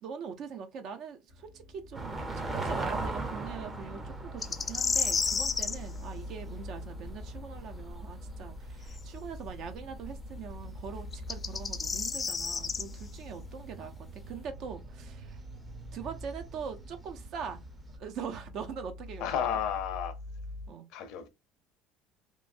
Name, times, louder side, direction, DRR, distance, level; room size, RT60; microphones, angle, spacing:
voice 1, 0.0-15.4 15.9-17.6 18.0-19.5 20.7-20.9, right 6 dB, 55° right, 0.6 m, -42 dB
sound 1, 1.3-20.7, left 1 dB, 90° right, 1.3 m, -46 dB
sound 2, 1.9-18.0, right 2 dB, 20° right, 0.6 m, -42 dB
sound 3, 4.4-5.8 8.9-9.0 11.1-12.8, left 5 dB, 25° left, 0.3 m, -30 dB
voice 2, 19.2-20.1 20.9-21.3, left 9 dB, 70° left, 0.6 m, -32 dB
3.0 x 2.2 x 2.5 m
supercardioid pair, 115°, 0 cm